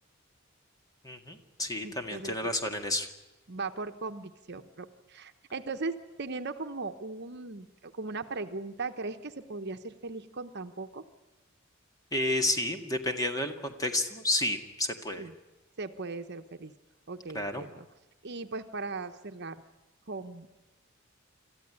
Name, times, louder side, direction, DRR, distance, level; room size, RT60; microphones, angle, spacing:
voice 1, 1.0-3.1 12.1-15.3 17.3-17.6, left 1 dB, 15° left, 5 dB, 1.9 m, -31 dB
voice 2, 1.8-2.5 3.5-11.0 15.2-15.3 15.8-16.7 17.1-17.9 18.2-19.6 20.1-20.5, right 3 dB, 55° right, 8 dB, 1.1 m, -38 dB
27.0 x 14.0 x 9.9 m, 1.1 s
head